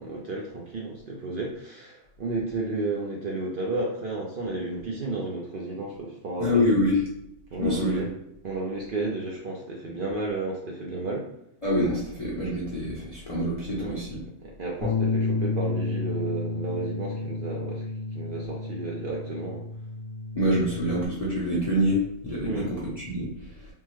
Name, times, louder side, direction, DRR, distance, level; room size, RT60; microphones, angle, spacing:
voice 1, 0.0-6.6 7.5-8.1 8.4-11.3 13.8-14.0 14.4-17.8 18.1-19.6 22.5-22.7, right 2 dB, 55° right, -2 dB, 0.6 m, -32 dB
voice 2, 6.4-7.0 7.6-8.1 11.6-14.2 20.3-23.7, left 1 dB, 35° left, -6 dB, 0.7 m, -26 dB
Bass guitar, 14.8-21.1, left 3 dB, 75° left, 1.1 m, -31 dB
3.5 x 2.1 x 3.0 m, 0.79 s
omnidirectional pair, 1.4 m